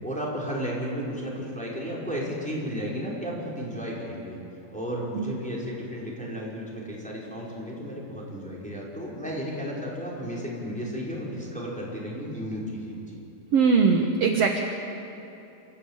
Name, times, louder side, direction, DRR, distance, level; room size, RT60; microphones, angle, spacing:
voice 1, 0.0-4.4 4.7-13.2, equal, ahead, -5 dB, 4.7 m, -33 dB
voice 2, 13.5-14.6, right 5 dB, 60° right, 3 dB, 1.7 m, -21 dB
28.5 x 14.5 x 9.0 m, 2.8 s
omnidirectional pair, 4.3 m